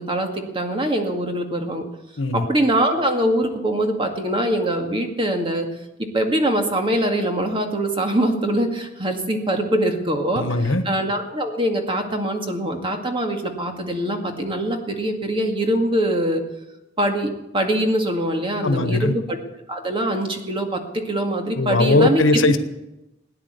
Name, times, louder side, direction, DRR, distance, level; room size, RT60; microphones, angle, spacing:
voice 1, 0.0-1.8 2.3-5.7 6.1-10.5 10.8-16.4 17.0-19.4 19.7-22.5, right 1 dB, 25° right, 4 dB, 2.0 m, -23 dB
voice 2, 10.4-10.8 18.6-19.1 21.6-22.6, left 2 dB, 85° left, 10 dB, 1.3 m, -19 dB
17.5 x 10.0 x 8.3 m, 0.94 s
head